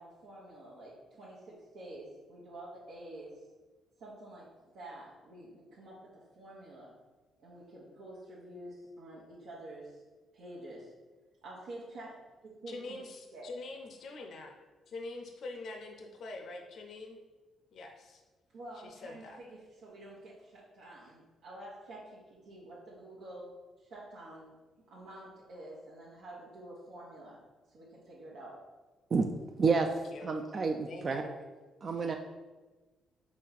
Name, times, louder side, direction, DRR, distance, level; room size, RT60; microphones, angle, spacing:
voice 1, 0.0-3.4 4.0-6.9 7.4-10.0 10.3-10.9 11.4-13.0 13.3-13.5 18.5-23.5 23.8-24.6 24.9-27.4 27.7-28.6, right 1 dB, 80° right, -7 dB, 1.1 m, -48 dB
voice 2, 12.7-14.6 14.9-17.2 17.7-18.2 18.8-19.4 30.1-30.3 30.9-31.4 31.9-32.0, left 2 dB, 60° left, 4 dB, 0.5 m, -44 dB
voice 3, 29.6-29.9 30.2-31.2 31.8-32.2, right 4 dB, 40° right, 4 dB, 0.3 m, -29 dB
4.1 x 3.0 x 4.0 m, 1.2 s
cardioid pair, 90°, 0 cm